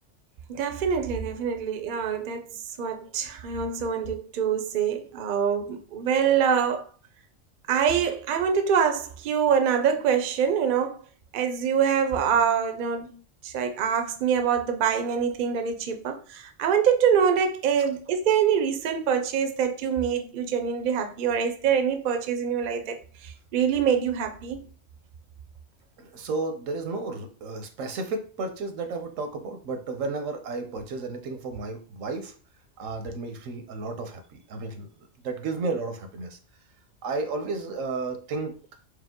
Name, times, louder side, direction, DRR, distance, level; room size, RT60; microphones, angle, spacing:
voice 1, 0.5-6.8 7.7-11.0 11.3-13.2 13.4-24.7, right 7 dB, 55° right, 0.5 m, -25 dB
voice 2, 26.0-32.3 32.8-34.9 35.2-36.4 37.0-38.5, right 3 dB, 85° right, 1.1 m, -32 dB
4.8 x 2.0 x 3.6 m
omnidirectional pair, 1.3 m